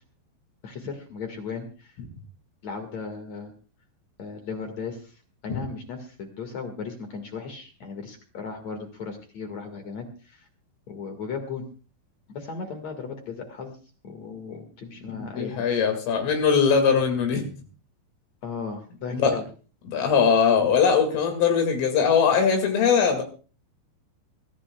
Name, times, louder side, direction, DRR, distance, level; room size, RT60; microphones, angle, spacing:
voice 1, 0.6-2.0 2.6-3.5 4.2-10.5 10.9-11.6 12.3-13.8 14.0-15.6 18.4-19.4, left 5 dB, 60° left, 5 dB, 1.8 m, -36 dB
voice 2, 15.1-17.4 19.1-19.4 19.9-23.2, left 6 dB, 75° left, 4 dB, 4.6 m, -21 dB
24.5 x 14.5 x 2.3 m, 0.37 s
omnidirectional pair, 5.8 m